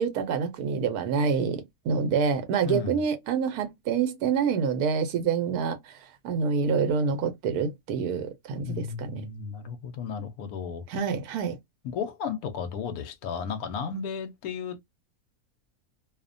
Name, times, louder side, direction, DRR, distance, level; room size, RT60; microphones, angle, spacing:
voice 1, 0.0-9.2 10.9-11.6, right 6 dB, 90° right, 1.1 m, -27 dB
voice 2, 2.6-3.0 8.6-10.8 11.8-14.8, left 6 dB, 80° left, 1.1 m, -34 dB
2.7 x 2.1 x 2.4 m
omnidirectional pair, 1.6 m